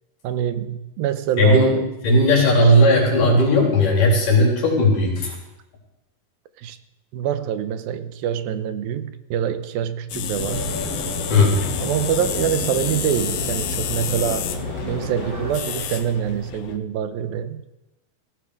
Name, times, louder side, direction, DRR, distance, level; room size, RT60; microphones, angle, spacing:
voice 1, 0.2-1.9 6.6-6.8 7.1-10.7 11.8-14.5 14.8-17.7, right 9 dB, 85° right, 11 dB, 2.7 m, -25 dB
voice 2, 1.4-1.7 2.0-5.4 11.3-11.6, left 1 dB, 60° left, -1 dB, 5.2 m, -16 dB
sound 1, 10.1-16.8, left 11 dB, 90° left, 2.9 m, -30 dB
sound 2, 10.4-15.5, left 1 dB, 30° left, 2.7 m, -33 dB
sound 3, 10.5-16.0, right 1 dB, 60° right, 4.6 m, -35 dB
17.0 x 16.0 x 4.9 m, 0.97 s
omnidirectional pair, 4.2 m